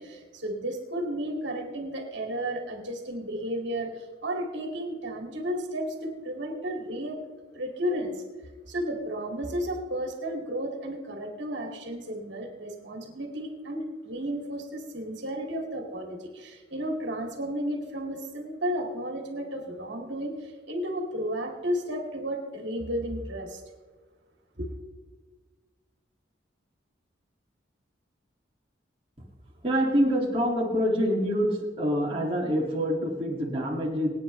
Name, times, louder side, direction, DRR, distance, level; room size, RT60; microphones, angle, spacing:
voice 1, 0.0-7.2 7.5-8.1 8.7-23.6 24.6-24.7, equal, 65° right, 2 dB, 2.5 m, -33 dB
voice 2, 29.6-34.1, equal, 30° right, -4 dB, 2.3 m, -26 dB
23.5 x 9.5 x 3.3 m, 1.4 s
head